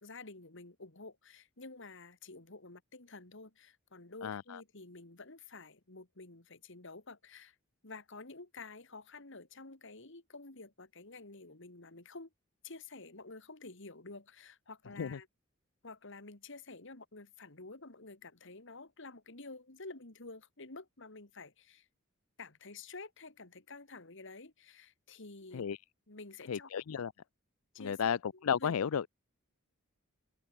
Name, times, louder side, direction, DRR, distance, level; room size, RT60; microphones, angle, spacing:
voice 1, 0.0-7.6 7.8-12.3 12.6-15.3 15.8-21.9 22.4-25.7 26.1-26.7 27.7-28.7, left 3 dB, 60° left, 2.4 m, -50 dB
voice 2, 4.2-4.6 15.0-15.2 25.5-25.8 26.5-27.1 27.8-29.1, left 7 dB, 90° left, 0.5 m, -33 dB
head